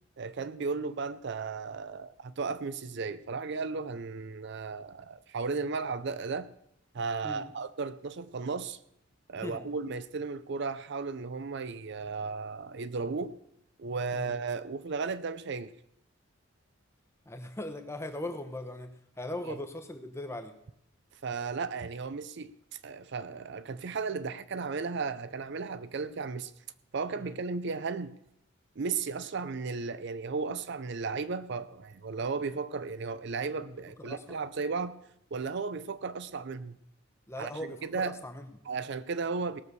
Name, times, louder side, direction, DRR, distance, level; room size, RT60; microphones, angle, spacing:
voice 1, 0.2-6.5 6.9-8.8 9.3-13.4 13.8-15.7 19.4-19.6 21.2-22.5 22.8-26.5 26.9-28.1 28.8-35.0 35.3-36.8 37.4-38.2 38.7-39.6, right 4 dB, 55° right, 0.5 m, -35 dB
voice 2, 17.3-20.5 27.2-27.3 34.0-34.4 37.3-38.5, left 1 dB, 15° left, 0.9 m, -39 dB
18.0 x 6.3 x 6.8 m
head